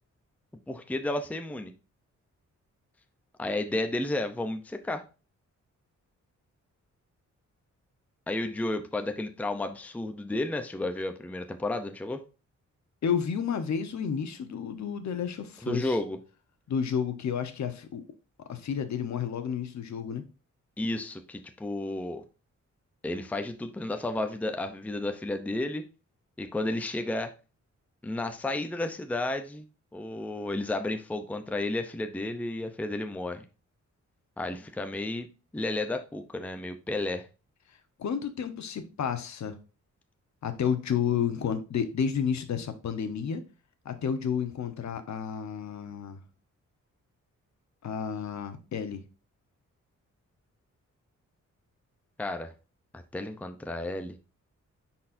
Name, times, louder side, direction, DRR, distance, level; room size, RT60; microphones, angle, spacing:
voice 1, 0.7-1.7 3.4-5.0 8.3-12.2 15.6-16.2 20.8-22.2 23.0-25.8 26.4-27.3 28.0-29.7 29.9-33.4 34.4-35.3 35.5-37.3 52.2-52.5 52.9-54.2, left 2 dB, 5° left, 0.6 m, -32 dB
voice 2, 13.0-15.9 16.7-18.0 18.5-20.2 38.0-39.6 40.4-43.4 43.8-46.2 47.8-49.0, left 7 dB, 70° left, 1.0 m, -31 dB
9.8 x 4.3 x 2.6 m
wide cardioid pair, 125°, 30 cm